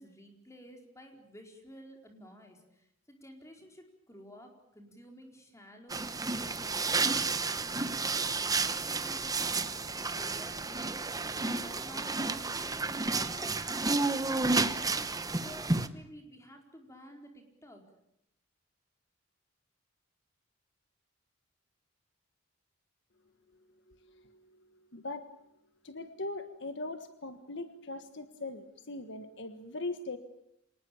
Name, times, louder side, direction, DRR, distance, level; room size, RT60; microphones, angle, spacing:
voice 1, 0.0-11.0 11.4-15.0 15.4-17.8, equal, 15° left, 3 dB, 4.5 m, -52 dB
sound 1, 5.9-15.9, right 3 dB, 20° right, 1.0 m, -31 dB
voice 2, 23.9-24.4 24.9-25.3 25.8-30.2, left 2 dB, 60° left, 9 dB, 1.5 m, -40 dB
26.5 x 19.5 x 8.7 m, 0.79 s
head